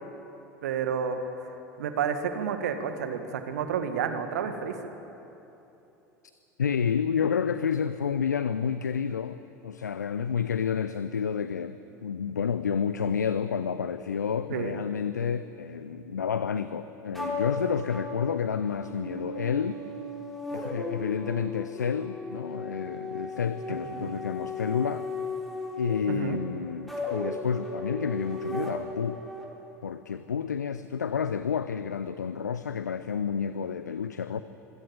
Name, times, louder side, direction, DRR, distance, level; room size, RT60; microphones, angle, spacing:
voice 1, 0.6-1.5 1.8-4.8 14.5-14.7 23.9-24.1 26.1-26.4, right 7 dB, 65° right, 8 dB, 1.8 m, -30 dB
voice 2, 6.6-19.8 20.5-25.1 25.8-29.2 29.8-34.4, left 7 dB, 80° left, 12 dB, 0.6 m, -30 dB
sound 1, 17.1-29.4, left 2 dB, ahead, 4.7 m, -36 dB
25.0 x 16.5 x 7.9 m, 3.0 s
figure-of-eight pair, 75°, 9 cm